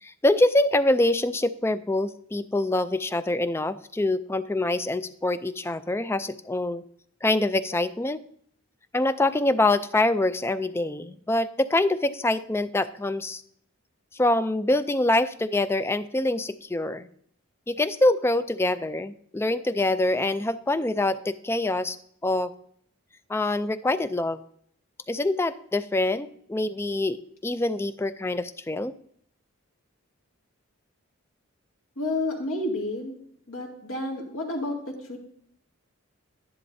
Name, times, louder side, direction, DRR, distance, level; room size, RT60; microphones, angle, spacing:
voice 1, 0.0-6.8 7.2-8.2 8.9-13.4 14.1-17.1 17.7-22.0 22.2-22.5 23.3-24.4 25.1-28.9, left 2 dB, 10° left, 14 dB, 0.3 m, -25 dB
voice 2, 32.0-33.1 33.5-35.2, left 2 dB, 80° left, -1 dB, 2.2 m, -30 dB
11.5 x 11.0 x 2.7 m, 0.65 s
head